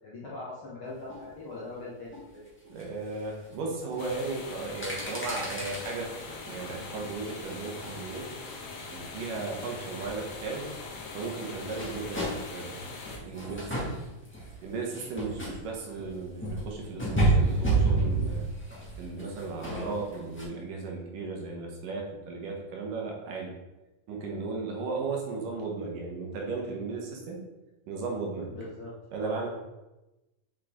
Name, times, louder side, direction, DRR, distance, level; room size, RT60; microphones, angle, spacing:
voice 1, 0.0-2.4 9.3-9.6 19.7-19.9 24.2-24.4 28.5-29.5, left 2 dB, 55° left, -7 dB, 1.6 m, -42 dB
sound 1, 1.1-1.3 2.1-2.2 2.7-2.8 3.5-3.6 3.9-4.1 4.6-5.9 6.3-6.8 7.3-9.7 10.0-20.4, right 2 dB, 10° left, 0.7 m, -31 dB
voice 2, 2.7-6.1 6.5-8.3 8.9-10.7 11.1-12.8 13.2-14.1 14.6-18.4 19.0-23.5 24.1-27.4 27.9-28.5 29.1-29.5, right 4 dB, 75° right, 0 dB, 2.8 m, -35 dB
sound 2, 4.0-13.2, left 4 dB, 90° left, 3.1 m, -42 dB
7.8 x 5.7 x 3.7 m, 1.0 s
omnidirectional pair, 3.9 m